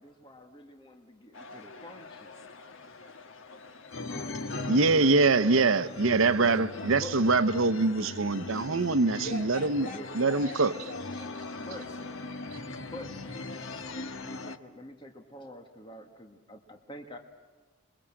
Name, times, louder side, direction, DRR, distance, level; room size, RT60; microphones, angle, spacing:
voice 1, 0.0-2.3 4.1-4.5 5.4-5.8 6.4-6.6 6.9-7.1 9.8-10.1 11.6-11.8 12.8-13.1 13.9-17.2, left 1 dB, 25° left, 1.7 m, -46 dB
sound 1, 1.3-14.6, left 3 dB, 65° left, 1.3 m, -40 dB
voice 2, 4.7-9.9 10.2-10.7, right 3 dB, 70° right, 0.8 m, -24 dB
voice 3, 9.2-12.6, left 2 dB, 40° left, 3.6 m, -44 dB
28.5 x 23.0 x 7.6 m
head